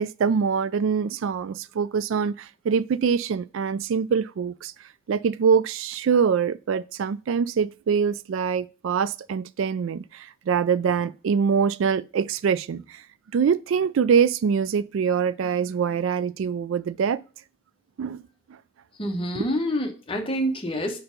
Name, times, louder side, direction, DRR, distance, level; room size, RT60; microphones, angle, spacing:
voice 1, 0.0-4.7 5.1-13.0 13.3-17.2 18.0-18.2 19.3-19.5, right 6 dB, 70° right, 0.3 m, -24 dB
voice 2, 19.0-21.0, equal, 25° left, 1.0 m, -27 dB
5.1 x 4.4 x 5.1 m
head